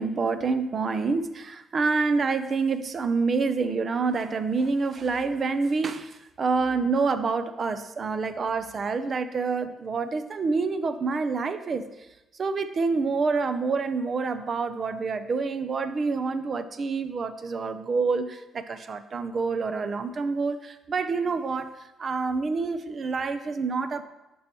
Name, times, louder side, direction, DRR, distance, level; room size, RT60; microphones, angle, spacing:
voice 1, 0.0-11.8 12.3-24.0, right 4 dB, 45° right, 11 dB, 0.5 m, -27 dB
11.5 x 5.4 x 3.0 m, 0.98 s
cardioid pair, 90°, 0 cm